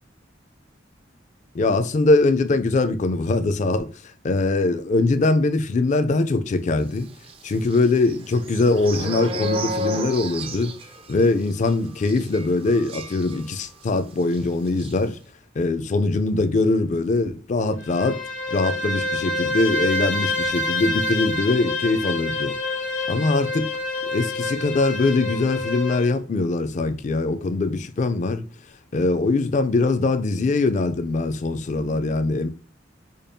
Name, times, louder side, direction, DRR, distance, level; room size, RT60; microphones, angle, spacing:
voice 1, 1.5-3.9 4.2-7.1 7.4-10.8 11.1-15.2 15.6-18.2 18.5-22.6 23.1-23.7 24.1-28.5 28.9-32.5, left 3 dB, 40° left, 0.4 m, -22 dB
sound 1, 7.2-13.9 14.2-14.4 14.7-15.0, right 1 dB, 30° right, 0.4 m, -33 dB
Bowed string instrument, 17.8-26.1, left 2 dB, 75° left, 1.0 m, -27 dB
5.1 x 2.3 x 2.6 m
head